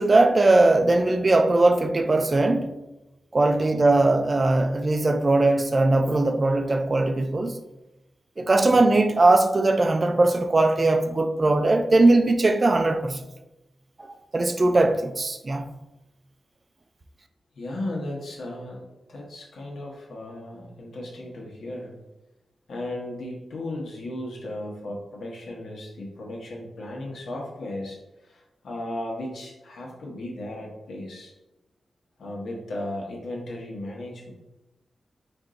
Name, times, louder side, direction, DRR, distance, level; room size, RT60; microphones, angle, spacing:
voice 1, 0.0-2.7 3.3-7.6 8.4-13.3 14.3-15.7, right 2 dB, 30° right, 0.3 m, -20 dB
voice 2, 3.4-3.9 8.4-8.8 17.5-18.8 19.1-22.0 22.7-31.3 32.2-34.3, left 1 dB, 80° left, 1.1 m, -36 dB
4.4 x 2.6 x 3.7 m
wide cardioid pair, 130°, 0 cm